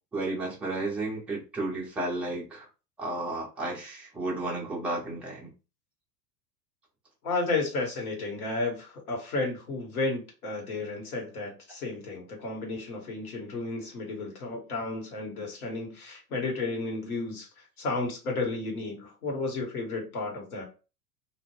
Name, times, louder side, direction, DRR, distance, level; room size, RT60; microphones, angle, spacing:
voice 1, 0.1-2.7 3.0-5.5, right 2 dB, 5° right, -3 dB, 0.4 m, -33 dB
voice 2, 7.2-17.5 17.8-20.7, left 3 dB, 60° left, 0 dB, 1.4 m, -32 dB
2.5 x 2.2 x 3.1 m, 0.32 s
figure-of-eight pair, 90°, 48 cm